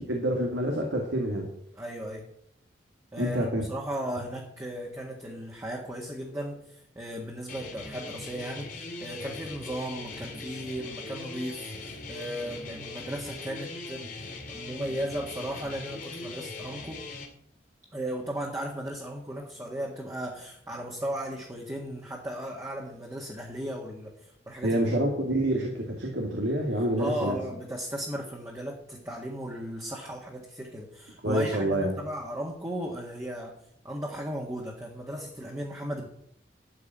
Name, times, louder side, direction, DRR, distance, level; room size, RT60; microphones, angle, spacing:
voice 1, 0.1-1.5 3.2-3.6 24.6-27.4 31.2-32.0, right 1 dB, 85° right, 1 dB, 2.4 m, -27 dB
voice 2, 1.8-2.2 3.1-17.0 17.9-24.1 24.5-25.1 27.0-33.6 33.8-36.1, equal, 15° right, -2 dB, 1.7 m, -36 dB
sound 1, 7.5-17.3, left 3 dB, 45° left, 2.4 m, -40 dB
12.5 x 5.6 x 9.0 m, 0.71 s
head